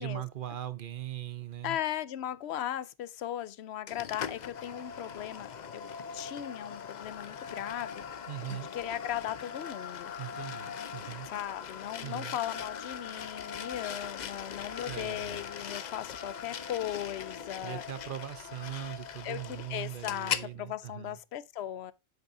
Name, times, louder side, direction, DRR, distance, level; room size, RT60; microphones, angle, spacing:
voice 1, 0.0-1.8 8.3-8.7 10.2-11.3 12.0-12.4 14.9-15.4 17.6-21.2, right 12 dB, 55° right, 0.9 m, -40 dB
voice 2, 1.6-5.9 6.1-8.0 8.7-10.1 11.3-17.8 19.2-21.9, left 11 dB, 80° left, 0.9 m, -37 dB
sound 1, 3.9-20.5, left 7 dB, 50° left, 0.6 m, -40 dB
8.1 x 7.9 x 2.6 m
omnidirectional pair, 1.1 m